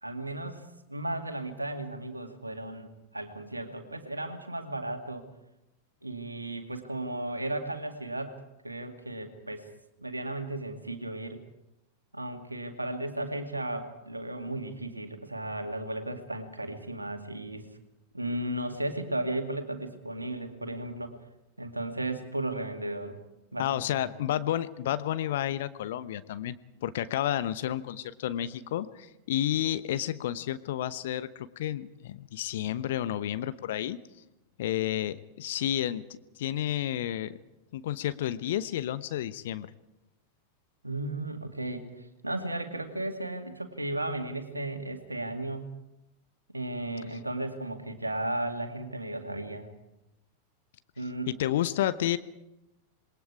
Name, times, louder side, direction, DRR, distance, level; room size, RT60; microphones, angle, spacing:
voice 1, 0.0-5.2 6.0-8.4 8.6-9.7 10.0-11.4 12.1-17.7 18.1-21.1 21.6-23.2 23.5-24.1 40.8-45.7 46.5-49.7 51.0-51.3, right 1 dB, 85° right, 6 dB, 2.3 m, -35 dB
voice 2, 23.6-26.6 26.8-34.0 34.6-37.4 37.7-39.7 51.3-52.2, left 12 dB, 55° left, 14 dB, 0.9 m, -31 dB
27.5 x 21.5 x 4.9 m, 0.92 s
figure-of-eight pair, 90°, 0 cm